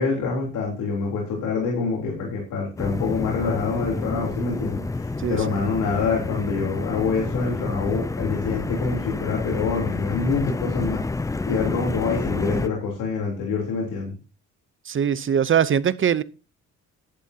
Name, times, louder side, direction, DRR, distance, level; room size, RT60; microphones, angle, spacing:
voice 1, 0.0-11.0 11.5-14.1, left 4 dB, 85° left, 3.6 m, -26 dB
sound 1, 2.8-12.7, left 3 dB, 10° left, 0.4 m, -29 dB
voice 2, 5.2-5.6 14.9-16.2, right 8 dB, 45° right, 0.7 m, -22 dB
12.0 x 11.5 x 2.8 m
cardioid pair, 90°, 30 cm